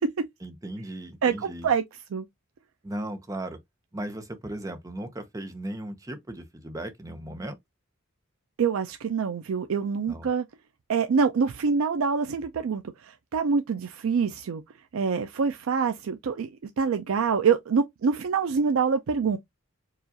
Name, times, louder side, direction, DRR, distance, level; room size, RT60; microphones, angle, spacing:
voice 1, 0.4-1.7 2.8-3.6 3.9-7.6 10.1-10.3, right 1 dB, 15° right, 0.6 m, -36 dB
voice 2, 1.2-1.8 2.1-2.3 8.6-10.4 10.9-14.6 14.9-16.5 16.8-19.4, right 5 dB, 75° right, 0.4 m, -25 dB
4.7 x 2.4 x 2.6 m
head